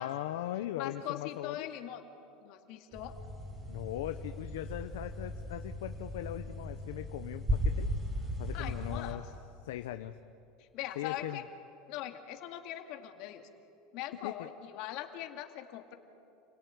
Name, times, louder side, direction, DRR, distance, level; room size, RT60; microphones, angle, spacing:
voice 1, 0.0-1.7 3.7-7.9 8.4-9.2 9.6-10.2 11.0-11.4 14.2-14.5, left 13 dB, 90° left, 8 dB, 0.8 m, -39 dB
voice 2, 0.7-2.0 2.4-3.1 8.5-9.3 10.6-11.5 11.9-13.5 13.9-16.0, left 12 dB, 60° left, 5 dB, 2.2 m, -41 dB
sound 1, 2.9-9.1, equal, 20° right, 5.9 m, -37 dB
30.0 x 18.5 x 9.6 m, 2.7 s
supercardioid pair, 130°, 0 cm